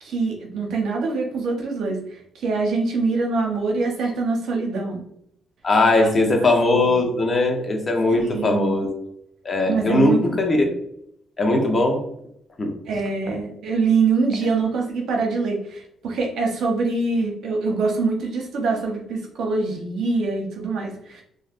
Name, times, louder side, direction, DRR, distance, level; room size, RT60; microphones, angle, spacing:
voice 1, 0.0-2.0 2.3-5.0 6.0-6.1 6.9-7.0 8.1-8.9 9.7-10.7 12.9-21.2, right 4 dB, 75° right, 1 dB, 0.8 m, -24 dB
voice 2, 5.6-8.9 9.4-10.6 11.4-12.0 12.6-12.7 13.3-13.4, left 2 dB, 35° left, 2 dB, 0.8 m, -19 dB
3.3 x 2.4 x 2.5 m, 0.72 s
cardioid pair, 90°, 0 cm